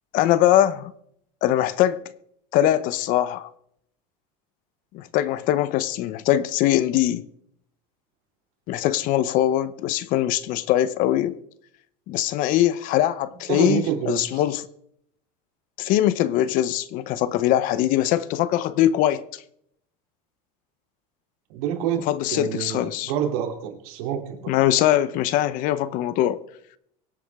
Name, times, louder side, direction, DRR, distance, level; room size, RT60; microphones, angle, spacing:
voice 1, 0.1-0.9 1.4-2.0 2.5-3.5 4.9-7.2 8.7-11.4 12.1-14.6 15.8-19.4 22.1-23.1 24.5-26.4, left 12 dB, 45° left, 0.7 m, -22 dB
voice 2, 13.5-14.4 21.5-24.5, right 9 dB, 75° right, 3.0 m, -28 dB
24.0 x 8.3 x 3.6 m
cardioid pair, 155°, 19 cm